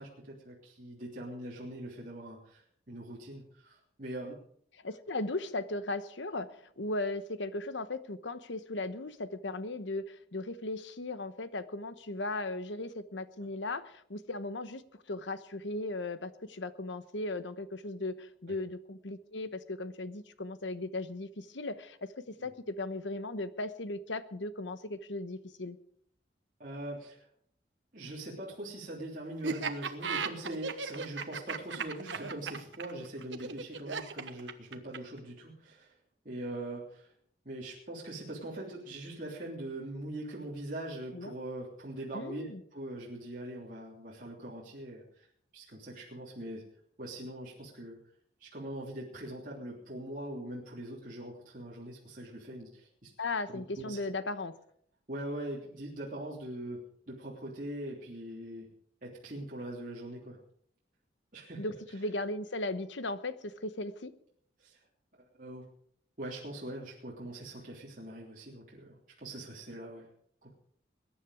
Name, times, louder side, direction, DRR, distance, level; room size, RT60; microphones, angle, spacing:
voice 1, 0.0-4.4 18.5-18.6 22.4-22.5 26.6-27.3 27.9-35.9 36.2-37.1 37.4-45.3 45.5-46.7 47.0-48.0 48.4-53.1 53.5-54.0 55.1-56.8 57.1-58.7 59.0-60.4 61.3-61.7 64.6-64.8 65.3-65.6 66.2-70.1 70.4-70.5, right 1 dB, 45° right, -5 dB, 3.3 m, -42 dB
voice 2, 4.8-14.8 15.1-25.8 41.1-41.3 42.1-42.6 53.2-54.5 61.6-64.1, left 2 dB, 85° left, 12 dB, 1.1 m, -37 dB
Laughter, 29.4-35.2, right 5 dB, 85° right, 1.2 m, -36 dB
21.5 x 10.0 x 4.9 m, 0.65 s
head